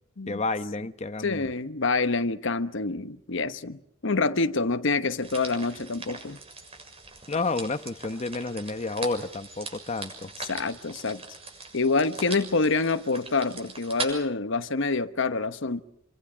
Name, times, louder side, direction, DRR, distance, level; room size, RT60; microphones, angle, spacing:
voice 1, 0.3-1.5 7.3-10.3, left 3 dB, 35° left, 0.9 m, -30 dB
voice 2, 1.2-6.4 10.5-11.2 11.7-15.8, left 3 dB, 65° left, 1.0 m, -27 dB
sound 1, 5.2-14.1, right 3 dB, 30° right, 6.7 m, -40 dB
28.0 x 24.0 x 6.2 m
head